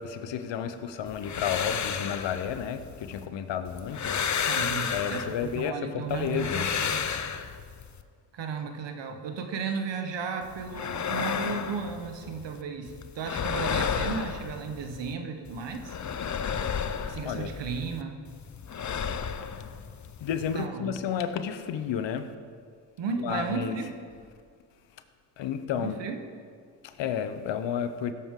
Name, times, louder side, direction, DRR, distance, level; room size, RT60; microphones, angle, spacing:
voice 1, 0.0-4.3 4.9-6.7 17.2-17.5 20.2-22.3 23.2-23.8 25.4-26.0 26.8-28.1, left 8 dB, 75° left, 9 dB, 0.9 m, -31 dB
sound 1, 1.1-3.3 3.7-5.7 6.1-8.0 10.4-12.6 12.9-15.1 15.5-18.0 18.3-20.7, left 7 dB, 40° left, 0.7 m, -32 dB
voice 2, 4.5-7.0 8.3-16.0 17.1-18.2 20.5-20.9 23.0-23.9 25.8-26.2, right 5 dB, 75° right, 5 dB, 1.3 m, -34 dB
16.0 x 8.3 x 3.8 m, 2.1 s
cardioid pair, 65°, 44 cm